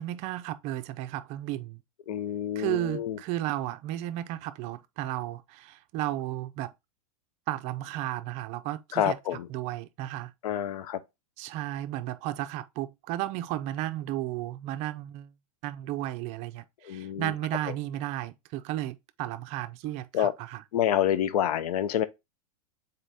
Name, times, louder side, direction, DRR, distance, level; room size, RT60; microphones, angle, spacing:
voice 1, 0.0-1.8 2.6-6.7 7.5-9.2 9.5-10.3 11.4-15.3 15.6-20.6, right 14 dB, 35° right, 0.4 m, -34 dB
voice 2, 2.1-3.2 8.9-9.5 10.4-11.0 16.8-17.3 20.1-20.3 20.7-22.0, left 10 dB, 80° left, 0.6 m, -27 dB
3.9 x 3.3 x 4.0 m
supercardioid pair, 145°, 19 cm